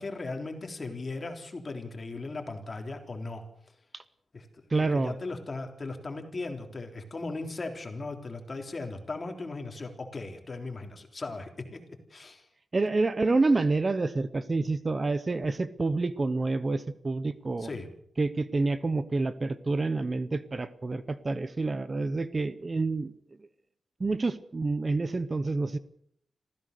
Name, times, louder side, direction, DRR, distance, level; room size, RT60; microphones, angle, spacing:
voice 1, 0.0-3.4 4.3-4.4 4.8-11.8 12.1-12.5 17.6-17.9, left 3 dB, 35° left, 4 dB, 3.5 m, -37 dB
voice 2, 4.7-5.2 12.7-17.7 18.2-23.1 24.0-25.8, right 3 dB, 30° right, 14 dB, 0.8 m, -28 dB
26.5 x 15.5 x 6.7 m, 0.69 s
wide cardioid pair, 140°, 0 cm